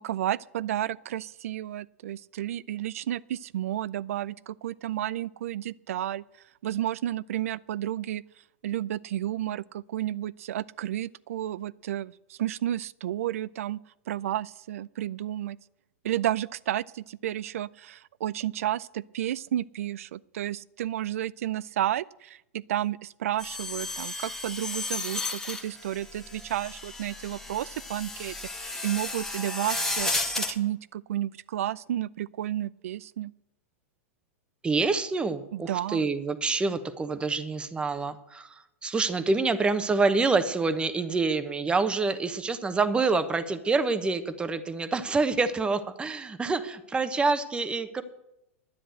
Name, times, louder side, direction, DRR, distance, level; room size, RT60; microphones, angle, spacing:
voice 1, 0.0-6.2 6.6-8.2 8.6-13.8 14.1-15.6 16.0-33.3 35.5-36.0, right 12 dB, 75° right, 0.4 m, -32 dB
sound 1, 23.4-30.5, left 2 dB, 5° left, 1.3 m, -33 dB
voice 2, 34.6-48.0, right 3 dB, 15° right, 1.0 m, -27 dB
10.5 x 9.9 x 7.7 m
hypercardioid pair, 125°, 8 cm